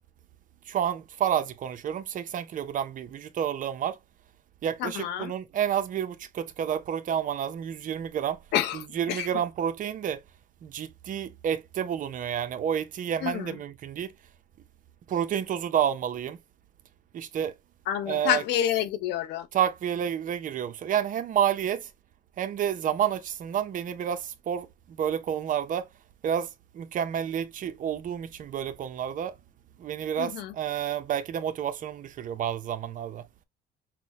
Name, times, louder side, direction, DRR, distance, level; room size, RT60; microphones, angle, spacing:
voice 1, 0.7-4.0 4.6-8.4 8.7-10.2 10.6-14.1 15.1-16.4 17.1-17.5 18.1-18.4 19.5-21.9 22.4-25.9 26.2-29.3 29.8-33.2, right 9 dB, 50° right, 0.7 m, -30 dB
voice 2, 4.8-5.3 8.5-9.3 13.2-13.6 17.9-19.5 30.2-30.5, left 10 dB, 85° left, 0.8 m, -28 dB
5.9 x 2.1 x 3.0 m
cardioid pair, 110°, 17 cm